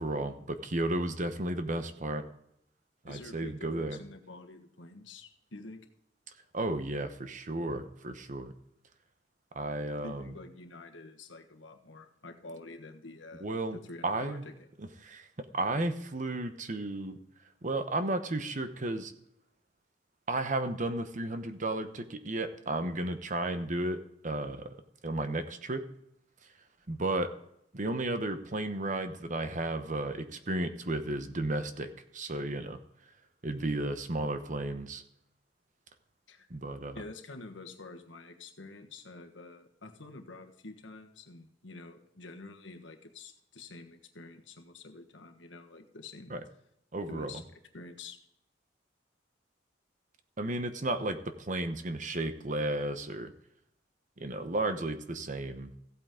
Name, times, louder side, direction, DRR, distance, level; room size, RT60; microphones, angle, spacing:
voice 1, 0.0-2.2 3.0-4.0 6.5-8.5 9.5-10.3 13.4-13.8 14.0-14.4 14.8-15.2 15.5-17.2 17.6-19.1 20.3-24.0 24.2-24.6 25.0-25.8 26.9-27.3 27.7-32.8 33.4-35.0 36.5-37.0 46.3-46.4 46.9-47.3 50.4-51.2 51.5-53.3 54.2-55.7, right 2 dB, 45° right, 9 dB, 1.0 m, -33 dB
voice 2, 3.0-5.9 10.0-14.7 36.3-36.5 36.9-46.3 47.1-47.4 47.7-48.2, left 3 dB, 90° left, 5 dB, 1.5 m, -48 dB
15.5 x 8.3 x 3.7 m, 0.76 s
head